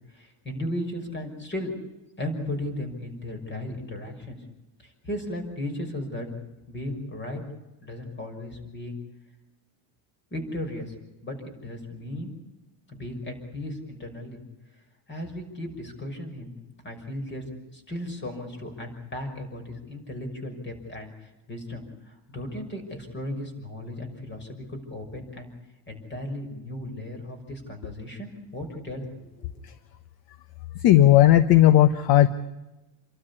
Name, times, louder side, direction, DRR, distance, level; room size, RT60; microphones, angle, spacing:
voice 1, 0.1-1.7 2.2-4.4 4.8-6.3 6.7-7.4 7.8-9.0 10.3-10.9 11.2-12.3 12.9-14.4 15.1-16.6 16.8-17.4 17.7-25.5 25.9-29.1 29.4-29.5, left 1 dB, 25° left, 6 dB, 6.0 m, -35 dB
voice 2, 30.8-32.3, left 13 dB, 50° left, 13 dB, 1.1 m, -16 dB
28.5 x 13.0 x 9.9 m, 1.0 s
cardioid pair, 135°, 47 cm